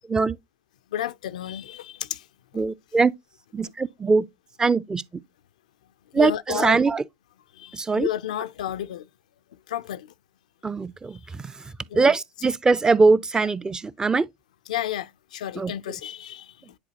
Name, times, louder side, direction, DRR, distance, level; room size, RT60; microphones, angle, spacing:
voice 1, 0.9-2.3 2.5-2.6 6.1-6.8 7.5-9.1 9.5-10.1 11.9-12.1 14.7-16.8, left 12 dB, 85° left, 0.4 m, -32 dB
voice 2, 2.5-3.1 3.5-4.3 4.6-5.0 6.1-7.0 7.7-8.1 10.6-11.6 11.9-14.2 15.6-15.7, right 4 dB, 20° right, 0.5 m, -22 dB
9.8 x 4.1 x 2.8 m
hypercardioid pair, 85°, 4 cm